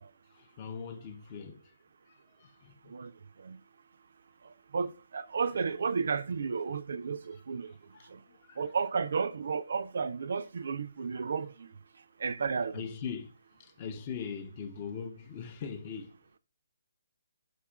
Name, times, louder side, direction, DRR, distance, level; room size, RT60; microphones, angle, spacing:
voice 1, 0.3-1.7 2.1-3.0 7.3-7.4 7.7-8.7 12.7-16.4, left 6 dB, 30° left, 0.5 m, -42 dB
voice 2, 4.4-7.7 8.1-8.2 8.6-11.7 12.2-12.8, right 5 dB, 65° right, 0.3 m, -33 dB
4.2 x 2.4 x 4.7 m
hypercardioid pair, 155°, 0 cm